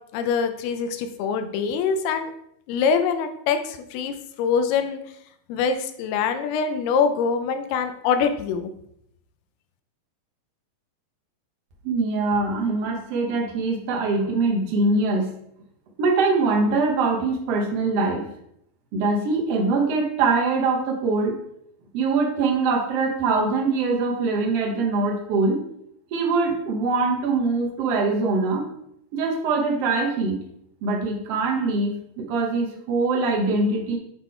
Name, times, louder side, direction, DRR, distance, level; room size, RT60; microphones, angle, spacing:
voice 1, 0.1-2.3 2.7-5.0 5.5-8.7, left 6 dB, 85° left, 8 dB, 2.6 m, -24 dB
voice 2, 11.8-15.3 16.0-18.2 18.9-21.4 21.9-25.6 26.1-28.6 29.1-30.4 30.8-32.0 32.3-34.0, right 3 dB, 70° right, 0 dB, 1.5 m, -23 dB
8.0 x 3.7 x 4.4 m, 0.73 s
omnidirectional pair, 4.4 m